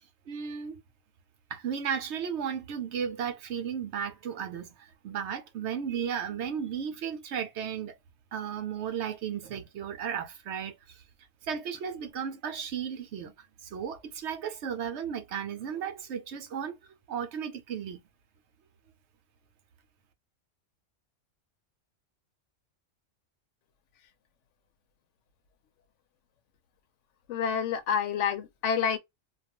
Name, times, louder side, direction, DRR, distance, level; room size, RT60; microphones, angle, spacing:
voice 1, 0.3-0.8 1.5-8.0 8.3-11.0 11.4-16.8 17.1-18.0, right 7 dB, 65° right, 0.8 m, -35 dB
voice 2, 27.3-29.0, left 7 dB, 75° left, 0.9 m, -28 dB
2.3 x 2.3 x 2.8 m
omnidirectional pair, 1.3 m